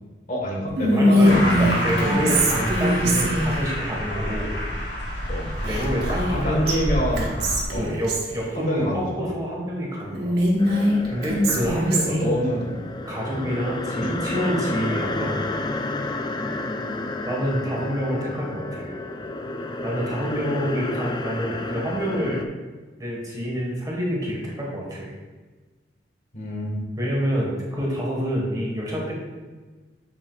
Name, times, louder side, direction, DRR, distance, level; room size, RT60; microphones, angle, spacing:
voice 1, 0.3-1.9 2.3-2.4 5.3-5.5 6.3-7.4 7.7-7.9 8.6-9.2 12.1-12.8 13.3-13.5 14.0-14.1 26.3-26.8, equal, 45° left, -1 dB, 1.5 m, -27 dB
Whispering, 0.8-3.6 5.6-6.4 6.7-6.8 7.2-8.3 10.1-12.3, equal, 65° right, 1.3 m, -21 dB
voice 2, 1.0-4.5 5.6-6.7 7.4-10.4 11.1-12.3 13.0-15.4 17.3-18.9 19.8-22.4 23.0-25.1 27.0-29.1, equal, 20° right, -3 dB, 1.4 m, -27 dB
sound 1, 1.3-7.6, equal, 70° left, 2.0 m, -28 dB
sound 2, 10.6-22.4, left 2 dB, 25° left, 0.4 m, -31 dB
7.2 x 7.0 x 2.3 m, 1.3 s
head